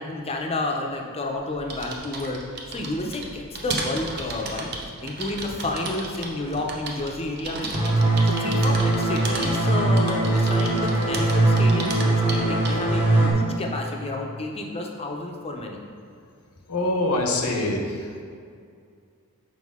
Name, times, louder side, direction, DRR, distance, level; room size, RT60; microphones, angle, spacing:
voice 1, 0.0-2.4 2.7-4.7 5.0-15.8, left 2 dB, 25° left, 2 dB, 0.6 m, -31 dB
sound 1, 1.4-13.0, right 3 dB, 50° right, 0.7 m, -35 dB
sound 2, 7.7-13.3, right 2 dB, 10° right, 0.9 m, -21 dB
voice 2, 16.7-18.2, left 2 dB, 85° left, 2 dB, 0.8 m, -25 dB
6.3 x 4.5 x 3.6 m, 2.3 s
head